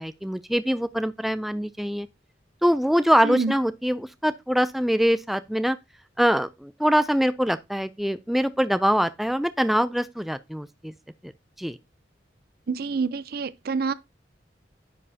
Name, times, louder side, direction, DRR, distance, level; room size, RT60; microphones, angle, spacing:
voice 1, 0.0-2.1 2.6-5.8 6.2-10.9 11.2-11.3 11.6-11.8, equal, ahead, 0.3 m, -23 dB
voice 2, 3.2-3.5 12.7-13.9, right 4 dB, 55° right, 0.5 m, -27 dB
10.0 x 6.9 x 2.7 m
head